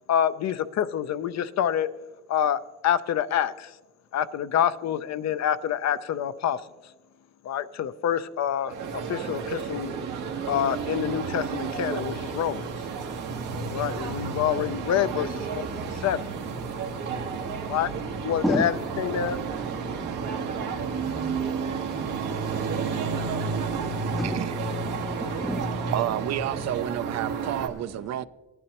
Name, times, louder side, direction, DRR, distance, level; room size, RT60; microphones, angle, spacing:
voice 1, 0.1-1.9 2.3-3.7 4.1-6.6 7.4-8.7 9.1-9.9 10.5-12.7 13.7-16.2 17.7-17.9 18.2-19.4, left 9 dB, 60° left, 0.6 m, -27 dB
sound 1, 8.7-27.7, right 5 dB, 90° right, 1.3 m, -31 dB
voice 2, 16.7-17.8 18.4-18.7 19.5-24.5 24.9-25.9, equal, ahead, 0.5 m, -35 dB
voice 3, 24.2-24.9 25.9-28.2, right 12 dB, 60° right, 0.5 m, -30 dB
17.5 x 11.0 x 2.9 m
cardioid pair, 90°, 30 cm